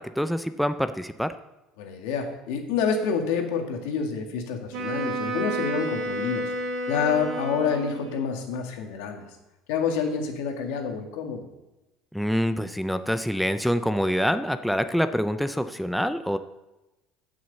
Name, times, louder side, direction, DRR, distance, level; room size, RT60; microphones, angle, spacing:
voice 1, 0.0-1.3 12.1-16.4, equal, ahead, 10 dB, 0.3 m, -26 dB
voice 2, 1.8-6.4 6.9-9.3 9.7-11.4, left 6 dB, 85° left, 3 dB, 1.9 m, -28 dB
Wind instrument woodwind instrument, 4.7-8.3, right 1 dB, 55° right, 2.6 m, -31 dB
15.5 x 6.3 x 4.0 m, 1.0 s
cardioid pair, 165°, 0 cm